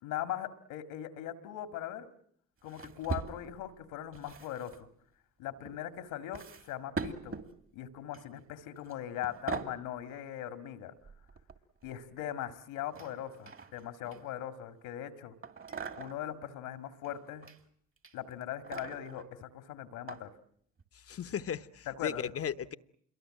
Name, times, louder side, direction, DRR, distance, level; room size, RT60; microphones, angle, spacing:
voice 1, 0.0-2.1 2.6-4.9 5.4-7.4 7.7-10.9 11.8-15.4 16.0-17.5 18.1-20.3 21.9-22.4, left 11 dB, 85° left, 10 dB, 2.0 m, -40 dB
sound 1, 2.7-3.7 4.1-4.8 5.6-5.8 6.3-7.5 8.1-8.4 8.8-8.9 9.2-9.8 11.0-11.9 12.9-14.5 15.4-16.3 17.0-17.6 18.0-19.3 20.1-20.2 20.8-20.9, right 5 dB, 40° right, 2.6 m, -42 dB
voice 2, 20.9-22.7, left 8 dB, 45° left, 14 dB, 1.1 m, -36 dB
27.0 x 23.0 x 7.7 m, 0.66 s
supercardioid pair, 60°, 31 cm